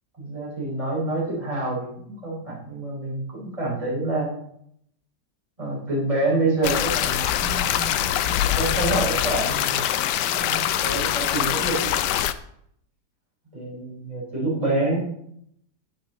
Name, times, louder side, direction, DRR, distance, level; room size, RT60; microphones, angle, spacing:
voice 1, 0.2-4.3 5.6-8.2 8.5-11.9 13.5-15.0, right 2 dB, 20° right, -6 dB, 5.1 m, -27 dB
sound 1, 6.6-12.3, left 11 dB, 90° left, 1.2 m, -24 dB
14.0 x 10.0 x 3.1 m, 0.71 s
omnidirectional pair, 1.8 m